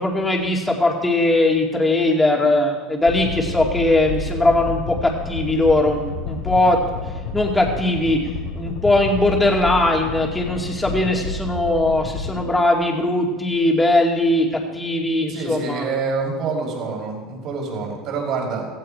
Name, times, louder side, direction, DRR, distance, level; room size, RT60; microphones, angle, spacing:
voice 1, 0.0-6.8 7.3-8.2 8.6-15.8, left 2 dB, 10° left, 0 dB, 2.4 m, -19 dB
sound 1, 3.1-12.4, left 4 dB, 70° left, 2.7 m, -30 dB
voice 2, 15.3-18.7, right 4 dB, 50° right, -1 dB, 5.4 m, -26 dB
17.0 x 15.0 x 4.4 m, 1.2 s
supercardioid pair, 130°, 0 cm